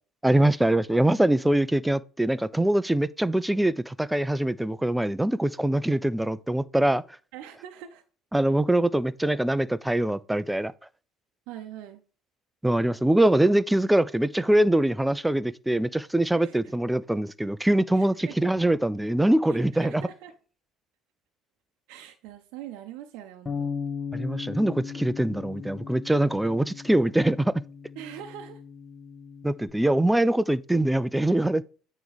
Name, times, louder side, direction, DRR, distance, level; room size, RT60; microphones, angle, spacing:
voice 1, 0.2-7.0 8.3-10.7 12.6-20.0 24.1-27.6 29.4-31.6, right 1 dB, 5° right, 0.4 m, -23 dB
voice 2, 7.3-8.0 11.5-12.0 16.4-16.8 17.9-18.4 19.5-20.3 21.9-23.7 28.0-28.6, right 11 dB, 65° right, 0.7 m, -43 dB
Bass guitar, 23.5-29.7, left 6 dB, 15° left, 1.3 m, -37 dB
9.2 x 3.1 x 5.0 m
figure-of-eight pair, 60°, 0 cm